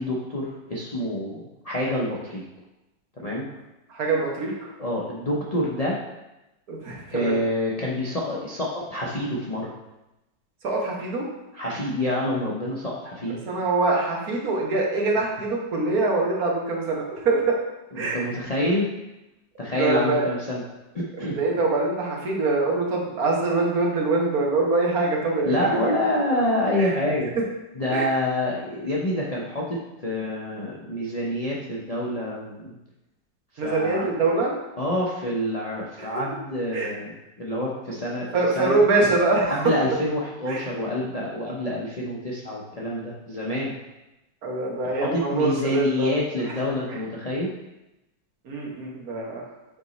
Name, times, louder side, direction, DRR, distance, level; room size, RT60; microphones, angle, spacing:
voice 1, 0.0-2.4 3.2-3.5 4.8-6.0 7.1-9.7 11.5-13.4 18.0-18.9 19.6-20.6 20.9-21.4 25.4-27.3 27.8-32.8 33.6-34.0 34.8-38.3 38.6-38.8 39.5-43.7 44.8-47.5, left 1 dB, 85° left, -5 dB, 0.3 m, -27 dB
voice 2, 3.9-4.7 6.7-7.4 10.6-11.3 13.3-17.6 17.9-18.2 19.7-20.3 21.3-26.0 26.3-26.4 26.7-27.0 27.9-28.1 33.6-34.5 36.0-36.2 36.7-36.9 38.3-39.7 40.5-40.6 44.4-46.2 46.4-46.6 46.9-47.0 48.4-49.4, right 3 dB, 60° right, -2 dB, 1.5 m, -24 dB
7.6 x 3.0 x 4.1 m, 0.96 s
omnidirectional pair, 1.9 m